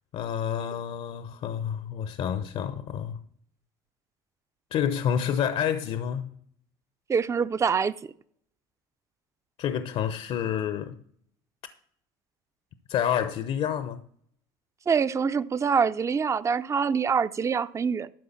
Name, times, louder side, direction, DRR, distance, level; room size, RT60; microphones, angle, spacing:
voice 1, 0.1-3.2 4.7-6.3 9.6-11.0 12.9-14.0, left 9 dB, 55° left, 0.8 m, -28 dB
voice 2, 7.1-7.9 14.9-18.1, right 6 dB, 25° right, 0.6 m, -25 dB
12.0 x 4.9 x 7.2 m
supercardioid pair, 80°, 12 cm